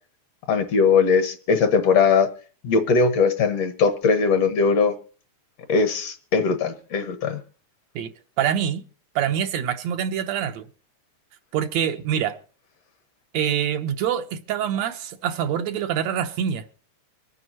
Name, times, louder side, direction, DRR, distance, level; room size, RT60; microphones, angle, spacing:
voice 1, 0.5-2.3 2.6-4.9 5.7-7.4, left 5 dB, 65° left, 2.3 m, -20 dB
voice 2, 8.4-8.8 9.2-10.7 11.5-12.4 13.3-16.7, right 9 dB, 75° right, 2.0 m, -25 dB
25.0 x 9.2 x 2.8 m
omnidirectional pair, 3.3 m